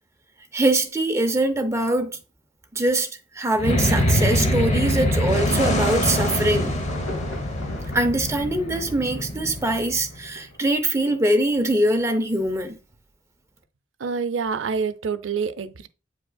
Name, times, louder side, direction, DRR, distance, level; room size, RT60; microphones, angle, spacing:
voice 1, 0.5-2.1 2.7-6.7 7.9-12.8, right 1 dB, 15° right, 0.6 m, -23 dB
sound 1, 3.6-10.2, left 1 dB, 35° left, 0.9 m, -24 dB
Insect / Thunder / Rain, 6.5-10.6 11.0-11.2, left 2 dB, 75° left, 3.0 m, -41 dB
voice 2, 14.0-15.9, right 5 dB, 70° right, 0.5 m, -27 dB
8.4 x 5.2 x 2.3 m
head